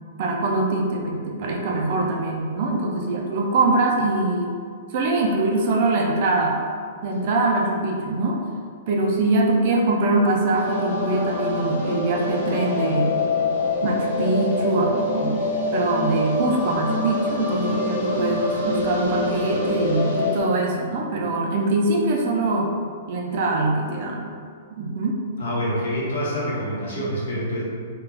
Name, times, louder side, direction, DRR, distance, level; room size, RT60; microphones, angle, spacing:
voice 1, 0.2-4.5 4.9-6.6 7.0-8.4 8.9-13.1 13.8-15.4 15.7-22.7 23.1-24.3 24.7-25.2, right 2 dB, 35° right, -1 dB, 0.3 m, -23 dB
sound 1, 10.5-20.4, left 2 dB, 50° left, 0.5 m, -25 dB
voice 2, 25.4-27.6, equal, 75° left, -6 dB, 1.0 m, -26 dB
2.4 x 2.2 x 3.2 m, 2.1 s
hypercardioid pair, 180°, 0 cm